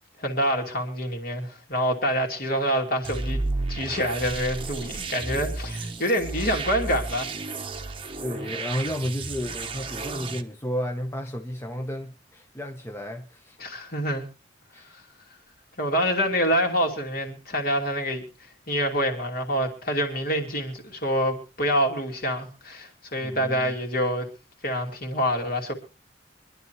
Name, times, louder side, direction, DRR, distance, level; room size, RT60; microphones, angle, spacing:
voice 1, 0.2-3.4 3.7-7.3 13.6-14.2 15.8-18.2 18.7-24.3 24.6-25.7, equal, 50° left, 2.9 m, -26 dB
sound 1, 3.0-10.4, right 3 dB, 30° right, 1.0 m, -32 dB
voice 2, 8.2-13.6 14.7-15.0 23.2-23.7, equal, 15° left, 0.9 m, -32 dB
25.0 x 11.0 x 3.1 m
head